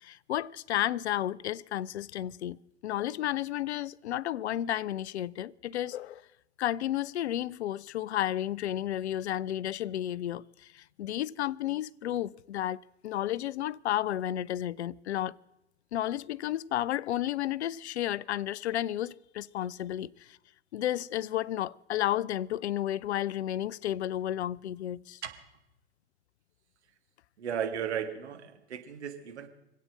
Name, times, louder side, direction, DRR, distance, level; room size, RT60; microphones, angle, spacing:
voice 1, 0.0-6.2 6.6-15.4 15.9-20.4 20.7-25.2, left 12 dB, 70° left, 0.5 m, -32 dB
voice 2, 27.4-29.5, right 8 dB, 70° right, 1.6 m, -35 dB
25.0 x 8.4 x 6.4 m
figure-of-eight pair, 90°, 35 cm